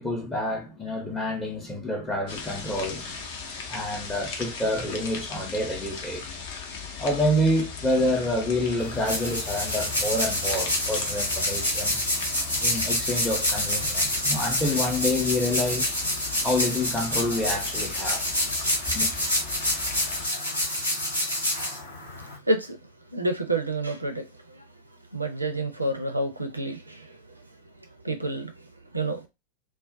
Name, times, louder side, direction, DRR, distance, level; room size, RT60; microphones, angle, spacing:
voice 1, 0.0-3.3 3.7-6.3 7.0-12.0 12.6-15.9 16.4-18.3 18.9-19.1, left 1 dB, 15° left, 0.6 m, -28 dB
sound 1, 2.3-20.3, left 5 dB, 55° left, 0.6 m, -38 dB
sound 2, 8.8-22.4, left 1 dB, 85° left, 1.1 m, -27 dB
voice 2, 22.5-22.8 23.1-24.6 25.1-27.2 28.0-28.5 28.9-29.2, right 2 dB, 85° right, 0.5 m, -28 dB
2.3 x 2.1 x 2.5 m
figure-of-eight pair, 90°, 0 cm